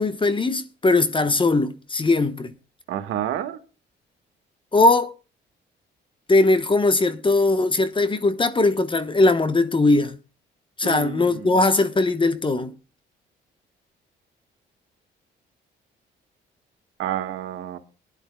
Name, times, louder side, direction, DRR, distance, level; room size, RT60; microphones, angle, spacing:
voice 1, 0.0-2.5 4.7-5.1 6.3-10.2 10.8-12.7, left 2 dB, 25° left, 1.0 m, -20 dB
voice 2, 2.9-3.6 10.8-11.6 17.0-17.8, right 11 dB, 85° right, 1.6 m, -29 dB
22.0 x 11.0 x 2.2 m
cardioid pair, 90°, 20 cm